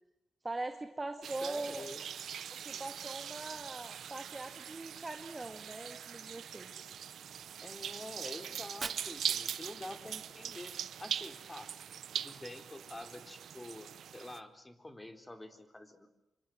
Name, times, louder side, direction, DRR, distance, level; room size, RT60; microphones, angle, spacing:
voice 1, 0.4-1.9 2.6-6.7, right 2 dB, 25° right, 7 dB, 2.1 m, -41 dB
sound 1, 1.2-14.4, right 9 dB, 85° right, 0.9 m, -42 dB
voice 2, 1.4-2.0 2.7-2.8 7.6-10.7 11.0-11.7 12.1-16.1, left 1 dB, 20° left, 7 dB, 3.8 m, -47 dB
Fire, 8.5-10.5, right 4 dB, 50° right, 2.2 m, -46 dB
27.5 x 25.0 x 7.8 m, 0.87 s
cardioid pair, 80°, 0 cm